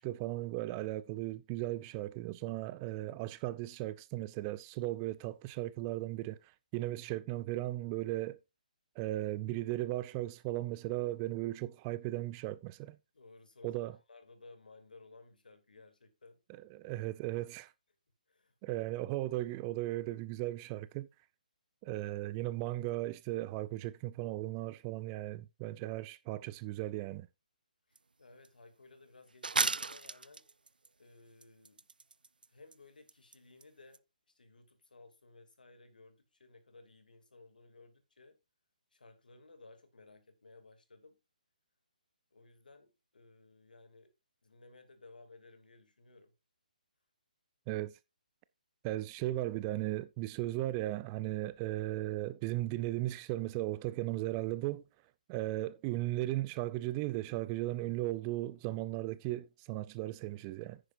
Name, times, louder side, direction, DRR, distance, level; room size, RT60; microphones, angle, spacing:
voice 1, 0.0-6.4 6.7-8.4 9.0-13.0 13.6-14.0 16.7-17.7 18.6-21.1 21.8-27.3 47.7-47.9 48.8-54.8 55.3-60.8, right 16 dB, 20° right, 0.4 m, -36 dB
voice 2, 13.1-16.4 18.3-18.9 27.9-30.4 31.0-31.8 32.5-34.0 34.3-38.4 38.9-41.2 42.3-44.1 44.4-46.3, left 3 dB, 80° left, 2.7 m, -58 dB
sound 1, 28.0-28.1 28.4-28.5 29.4-30.9 31.4-32.5 32.7-32.8 33.1-33.4 33.6-33.7 33.9-34.0, right 4 dB, 90° right, 0.4 m, -34 dB
9.9 x 9.9 x 2.6 m
hypercardioid pair, 150°, 5 cm